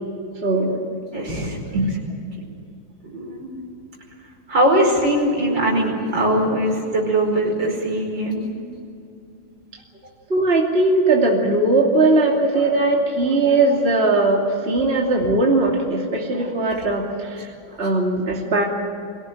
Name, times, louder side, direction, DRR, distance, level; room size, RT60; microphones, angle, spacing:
voice 1, 0.4-0.8 1.7-2.0 6.3-6.4 10.3-17.5 17.8-18.6, right 2 dB, 30° right, -1 dB, 3.0 m, -19 dB
voice 2, 1.1-1.6 3.1-3.5 4.5-8.4, right 1 dB, 60° right, 0 dB, 5.7 m, -21 dB
24.0 x 17.5 x 9.1 m, 2.6 s
omnidirectional pair, 2.2 m